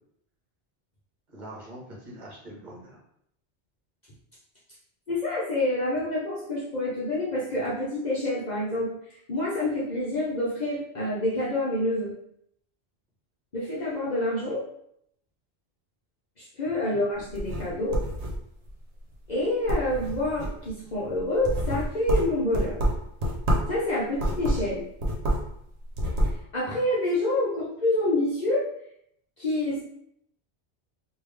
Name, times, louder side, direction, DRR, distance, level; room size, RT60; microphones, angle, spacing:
voice 1, 1.3-3.0 16.6-17.0, right 1 dB, 45° right, -5 dB, 1.3 m, -44 dB
voice 2, 5.1-8.9 9.3-12.1 13.5-14.6 16.4-18.0 19.3-22.8 23.7-24.8 26.2-28.6 29.4-29.8, left 1 dB, 45° left, -6 dB, 0.7 m, -27 dB
sound 1, 17.2-18.7 19.1-19.4 19.7-20.7 21.1-23.8 24.1-25.6 25.8-26.4, right 1 dB, 90° right, 1.1 m, -27 dB
3.2 x 2.7 x 3.3 m, 0.73 s
omnidirectional pair, 1.1 m